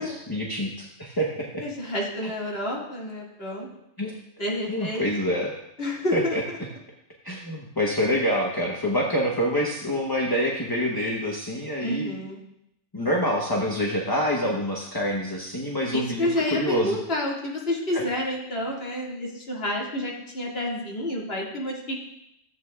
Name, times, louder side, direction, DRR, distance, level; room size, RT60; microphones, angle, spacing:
voice 1, 0.0-1.6 4.0-4.2 4.7-5.5 6.1-6.4 7.2-12.2 12.9-17.0 17.9-18.0, equal, 20° left, -2 dB, 0.9 m, -26 dB
voice 2, 1.6-3.7 4.4-5.0 5.8-6.6 11.8-12.4 15.9-22.1, left 1 dB, 50° left, -5 dB, 2.4 m, -29 dB
14.0 x 8.3 x 2.4 m, 0.81 s
omnidirectional pair, 1.3 m